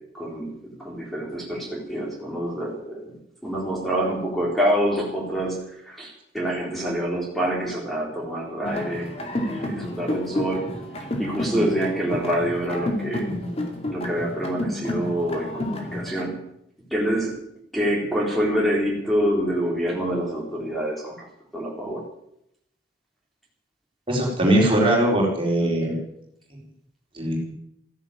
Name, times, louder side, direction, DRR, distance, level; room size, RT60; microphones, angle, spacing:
voice 1, 0.0-10.7 11.2-13.3 13.9-16.4 16.9-17.3 17.7-21.3 21.5-22.0, equal, ahead, -3 dB, 4.1 m, -26 dB
sound 1, 8.6-16.2, left 1 dB, 35° left, 2.5 m, -30 dB
voice 2, 24.1-26.0 27.1-27.5, right 1 dB, 30° right, -2 dB, 4.2 m, -21 dB
14.5 x 11.0 x 8.7 m, 0.77 s
head